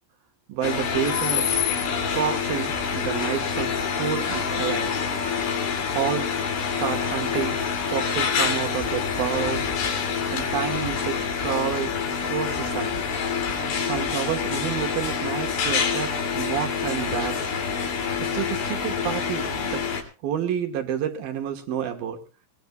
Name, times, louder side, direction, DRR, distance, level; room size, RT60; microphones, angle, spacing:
voice 1, 0.5-1.5 2.1-4.9 5.9-6.3 6.8-7.6 7.9-9.7 10.3-11.9 12.3-13.0 13.8-17.4 18.2-19.8 20.2-22.2, right 9 dB, 65° right, 4 dB, 2.6 m, -29 dB
sound 1, 0.6-20.0, left 6 dB, 55° left, 4.2 m, -26 dB
23.0 x 19.0 x 2.3 m, 0.33 s
omnidirectional pair, 5.6 m